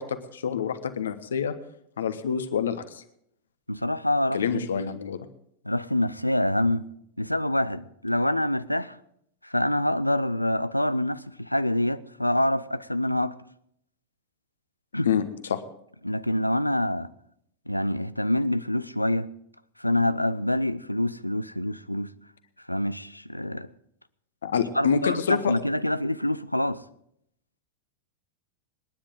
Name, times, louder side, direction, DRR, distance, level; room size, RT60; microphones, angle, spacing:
voice 1, 0.0-1.5 2.0-3.0 4.3-5.3 15.0-15.2 15.5-15.6 24.4-25.5, left 7 dB, 65° left, 1.2 m, -27 dB
voice 2, 3.7-5.0 5.7-6.9 7.2-9.0 9.4-13.3 14.9-15.1 16.0-17.1 17.7-19.3 19.8-22.1 22.7-23.7 24.7-26.8, left 1 dB, 90° left, 0.5 m, -26 dB
27.0 x 10.5 x 3.8 m
figure-of-eight pair, 90°, 0 cm